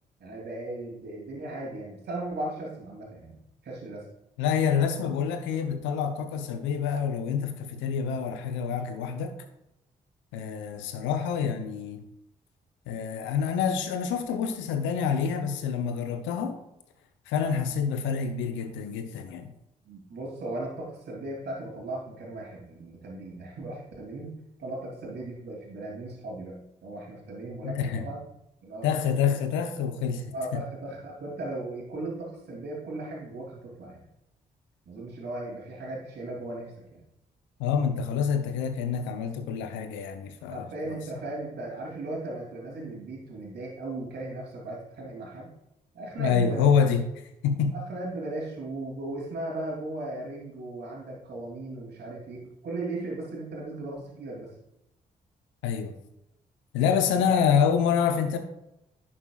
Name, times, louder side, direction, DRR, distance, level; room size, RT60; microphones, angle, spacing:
voice 1, 0.2-4.0 19.8-24.3 24.6-28.2 28.6-28.9 30.3-34.0 34.8-37.0 40.5-45.5 45.9-46.7 47.7-54.5 57.3-57.4, right 2 dB, 60° right, -3 dB, 2.9 m, -37 dB
voice 2, 4.4-9.3 10.3-12.0 12.9-16.6 17.3-19.5 27.6-28.1 28.8-30.6 37.6-41.0 46.2-47.0 47.4-47.7 55.6-55.9 56.7-58.4, left 7 dB, 80° left, 7 dB, 0.8 m, -27 dB
11.0 x 5.8 x 2.4 m, 0.86 s
hypercardioid pair, 40°, 19 cm